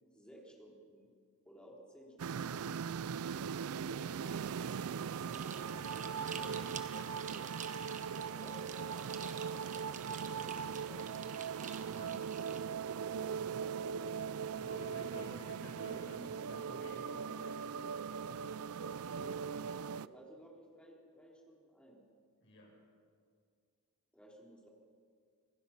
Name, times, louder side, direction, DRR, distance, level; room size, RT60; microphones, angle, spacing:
voice 1, 0.1-1.1 1.5-2.7 8.3-9.1 10.4-11.0 19.8-22.0 24.1-24.7, equal, 5° left, -2 dB, 3.5 m, -57 dB
sound 1, 2.2-20.1, right 6 dB, 75° right, 0.4 m, -40 dB
sound 2, 5.3-12.6, right 7 dB, 35° right, 1.2 m, -49 dB
voice 2, 5.6-7.5 10.2-10.5 11.9-12.3 14.5-17.9 22.4-22.8, equal, 55° left, -3 dB, 7.7 m, -52 dB
26.0 x 17.0 x 5.9 m, 2.1 s
head